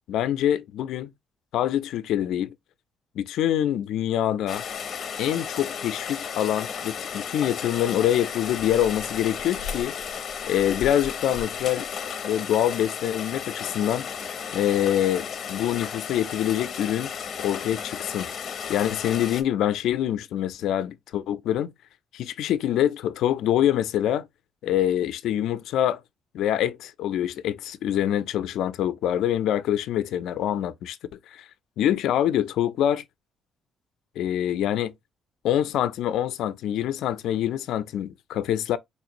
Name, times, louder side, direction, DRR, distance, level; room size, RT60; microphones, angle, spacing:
voice 1, 0.1-1.1 1.5-2.5 3.2-4.6 5.2-10.0 10.5-11.9 12.2-14.1 14.5-17.1 17.4-18.3 18.7-21.7 22.1-24.3 24.6-26.0 26.3-31.0 31.3-31.4 31.8-33.0 34.2-34.9 35.4-38.8, left 11 dB, 75° left, 0.4 m, -25 dB
Rain, 4.5-19.4, left 7 dB, 45° left, 0.7 m, -34 dB
4.3 x 2.5 x 2.9 m
cardioid pair, 165°, 0 cm